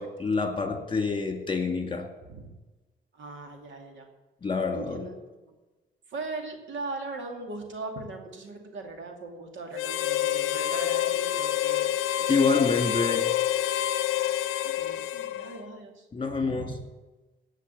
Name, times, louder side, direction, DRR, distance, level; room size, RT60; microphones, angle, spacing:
voice 1, 0.0-2.1 4.4-5.1 12.3-13.3 16.1-16.8, left 4 dB, 25° left, 5 dB, 2.2 m, -27 dB
voice 2, 3.1-4.1 4.7-5.2 5.4-5.5 6.1-12.9 14.6-16.7, right 3 dB, 75° right, 4 dB, 2.6 m, -40 dB
Harmonica, 9.7-15.7, left 12 dB, 90° left, 0.6 m, -27 dB
17.0 x 5.8 x 8.4 m, 1.2 s
cardioid pair, 90°, 20 cm